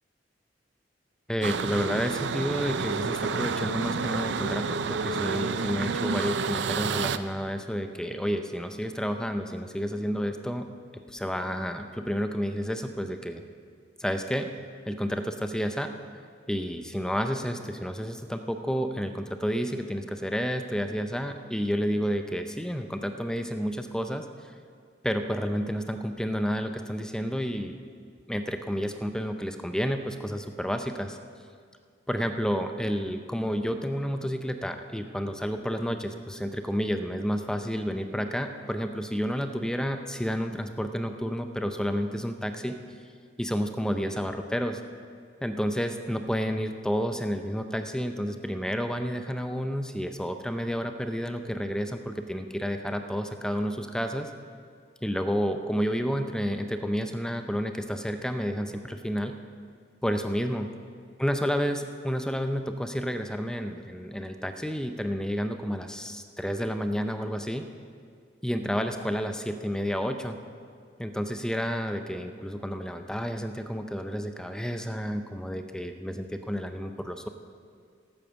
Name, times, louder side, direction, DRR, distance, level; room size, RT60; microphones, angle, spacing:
voice 1, 1.3-10.7 11.1-13.4 14.0-14.5 14.9-15.9 16.5-24.3 25.0-27.8 28.3-31.1 32.1-42.7 43.4-44.8 45.4-54.3 55.0-59.4 60.0-60.7 61.2-67.7 68.4-70.4 71.0-77.3, equal, 5° left, 7 dB, 0.5 m, -30 dB
sound 1, 1.4-7.2, right 5 dB, 65° right, 0.4 m, -29 dB
12.5 x 8.9 x 7.0 m, 2.1 s
head